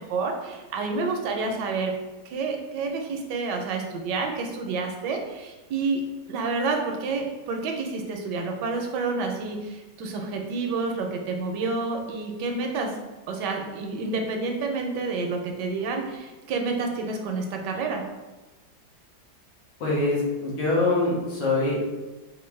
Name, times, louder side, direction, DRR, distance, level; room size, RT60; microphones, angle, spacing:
voice 1, 0.0-1.9 2.3-6.0 6.3-13.0 13.3-18.0, right 4 dB, 70° right, 2 dB, 1.1 m, -29 dB
voice 2, 19.8-21.8, left 2 dB, 80° left, -6 dB, 2.0 m, -24 dB
5.1 x 2.5 x 3.1 m, 1.1 s
omnidirectional pair, 2.1 m